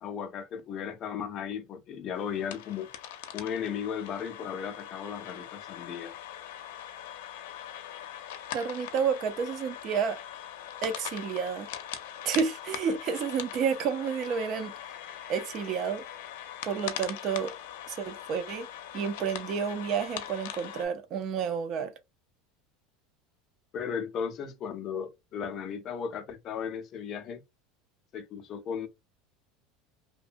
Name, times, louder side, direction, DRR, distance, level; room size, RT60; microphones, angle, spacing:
voice 1, 0.0-2.9 3.3-6.1 23.7-27.4 28.1-28.9, left 7 dB, 30° left, 0.5 m, -35 dB
sound 1, 2.1-20.9, left 10 dB, 90° left, 0.5 m, -41 dB
voice 2, 8.5-10.2 10.8-11.7 12.3-14.7 15.3-16.0 16.6-17.5 17.9-18.7 18.9-21.9, right 6 dB, 35° right, 0.4 m, -30 dB
2.8 x 2.1 x 2.5 m
cardioid pair, 170°, 0 cm